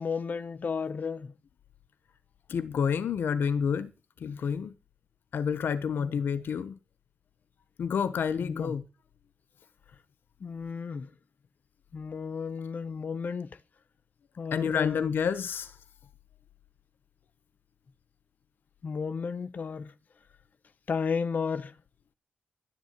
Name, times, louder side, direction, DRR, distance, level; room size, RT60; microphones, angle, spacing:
voice 1, 0.0-1.3 6.0-6.2 8.4-8.7 10.4-11.1 11.9-13.6 14.4-15.1 18.8-19.9 20.9-21.7, left 5 dB, 55° left, 1.0 m, -33 dB
voice 2, 2.5-3.9 4.2-4.7 5.3-6.8 7.8-8.8 14.5-15.8, left 7 dB, 85° left, 1.1 m, -29 dB
13.0 x 10.5 x 8.2 m
wide cardioid pair, 125°, 3 cm